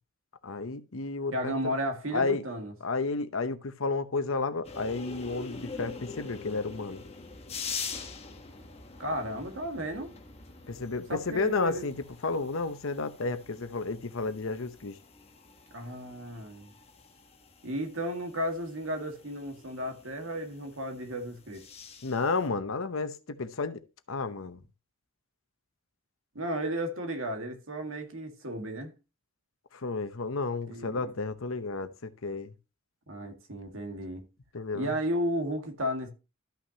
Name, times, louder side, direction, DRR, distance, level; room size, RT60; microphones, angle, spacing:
voice 1, 0.4-1.7 2.1-2.4 2.8-7.0 10.7-11.9 12.2-15.0 22.0-23.8 24.1-24.6 29.7-32.5 34.5-34.9, left 3 dB, 70° left, 0.8 m, -32 dB
voice 2, 1.3-2.7 9.0-10.1 11.1-11.9 15.7-16.7 17.6-21.7 26.4-28.9 30.7-31.0 33.1-34.2 34.7-36.1, equal, 70° right, 2.0 m, -34 dB
sound 1, 4.6-22.5, left 5 dB, 30° left, 1.2 m, -45 dB
13.0 x 5.8 x 2.9 m
head